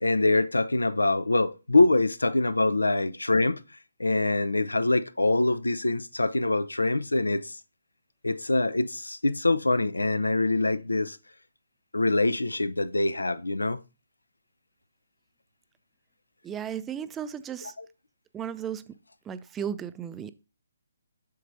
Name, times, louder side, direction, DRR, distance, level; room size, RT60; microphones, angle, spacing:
voice 1, 0.0-3.6 4.0-7.6 8.2-11.2 11.9-13.8 17.6-17.7, left 2 dB, 85° left, 0.6 m, -24 dB
voice 2, 16.4-17.7 18.3-18.9 19.3-20.3, right 8 dB, 10° right, 0.4 m, -35 dB
7.5 x 6.6 x 2.7 m
figure-of-eight pair, 140°, 0 cm